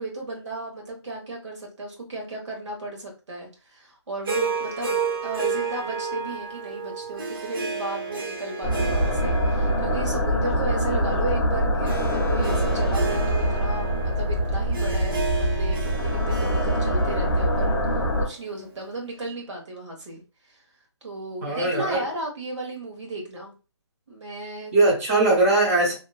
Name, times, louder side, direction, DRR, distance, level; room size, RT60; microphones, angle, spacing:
voice 1, 0.0-5.0 5.2-17.8 18.2-20.6 21.0-23.5 24.1-24.7, right 2 dB, 80° right, 1.4 m, -34 dB
Harp, 4.3-18.6, right 5 dB, 50° right, 0.7 m, -32 dB
sound 1, 8.6-18.2, equal, 5° left, 0.6 m, -24 dB
voice 2, 21.4-22.0 24.7-25.9, right 2 dB, 30° right, 1.1 m, -20 dB
2.9 x 2.5 x 2.3 m
hypercardioid pair, 165°, 15 cm